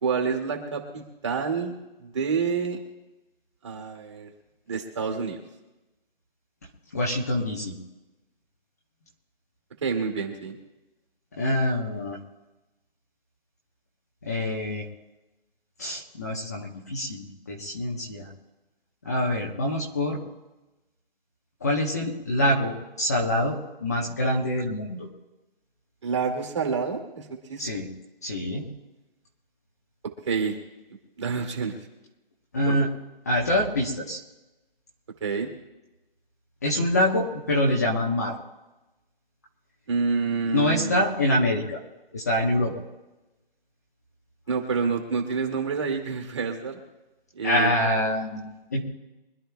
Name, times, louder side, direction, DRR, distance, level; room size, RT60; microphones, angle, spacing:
voice 1, 0.0-2.8 3.6-4.3 4.7-5.4 9.8-10.6 26.0-27.6 30.3-30.6 31.2-31.7 32.7-32.8 35.2-35.5 39.9-41.0 44.5-46.8 47.4-47.7, right 5 dB, 30° right, 2 dB, 2.2 m, -28 dB
voice 2, 6.9-7.8 11.4-12.2 14.3-14.9 15.8-18.3 19.0-20.2 21.6-25.1 27.6-27.9 28.2-28.7 32.5-32.9 33.2-34.2 36.6-38.3 40.4-41.8 42.1-42.7 47.4-48.4 48.7-48.8, left 1 dB, 15° left, -2 dB, 1.0 m, -25 dB
25.0 x 12.5 x 2.3 m, 1.0 s
hypercardioid pair, 175°, 30 cm